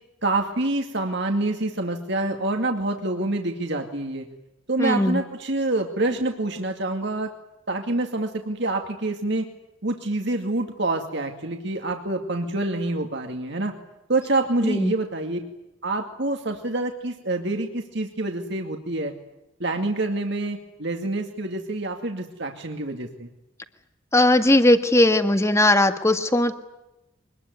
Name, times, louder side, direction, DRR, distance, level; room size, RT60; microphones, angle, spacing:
voice 1, 0.2-4.3 4.7-7.3 7.7-9.5 9.8-13.7 14.1-15.4 15.8-19.1 19.6-23.3, right 2 dB, 60° right, 3 dB, 2.3 m, -26 dB
voice 2, 4.8-5.2 14.6-14.9 24.1-26.6, left 1 dB, 15° left, 8 dB, 1.8 m, -19 dB
24.5 x 21.0 x 9.6 m, 0.93 s
head